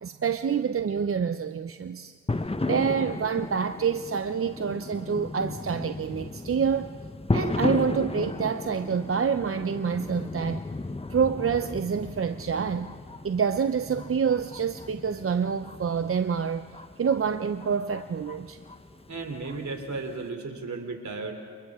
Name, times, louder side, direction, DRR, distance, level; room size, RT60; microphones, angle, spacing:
voice 1, 0.0-2.1 2.7-6.9 7.3-10.6 11.1-13.0 13.2-16.7 17.0-18.6, right 6 dB, 45° right, 0.7 m, -27 dB
sound 1, 2.3-20.3, left 2 dB, 20° left, 0.9 m, -35 dB
voice 2, 19.1-21.3, right 3 dB, 65° right, 3.2 m, -34 dB
29.0 x 29.0 x 3.7 m
cardioid pair, 50°, 30 cm